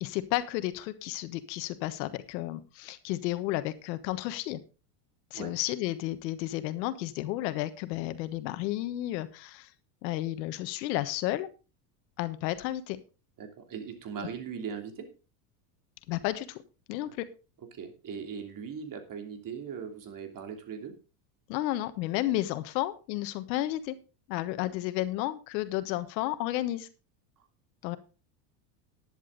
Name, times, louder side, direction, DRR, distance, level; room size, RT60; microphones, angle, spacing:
voice 1, 0.0-4.6 5.3-9.7 10.0-11.5 12.2-13.0 16.1-16.6 16.9-17.3 21.5-24.0 24.3-26.9 27.8-28.0, left 15 dB, 85° left, 12 dB, 1.4 m, -32 dB
voice 2, 13.4-15.1 17.0-17.1 17.7-20.9, right 6 dB, 40° right, 5 dB, 3.1 m, -39 dB
11.5 x 10.5 x 3.9 m, 0.32 s
supercardioid pair, 120°, 50 cm